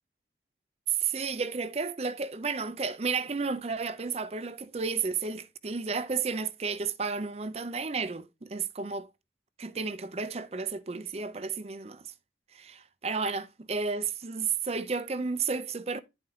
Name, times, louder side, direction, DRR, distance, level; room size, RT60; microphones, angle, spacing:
voice 1, 0.9-9.1 9.6-12.1 12.5-16.0, right 5 dB, 35° right, 0.6 m, -32 dB
10.5 x 4.4 x 3.6 m
head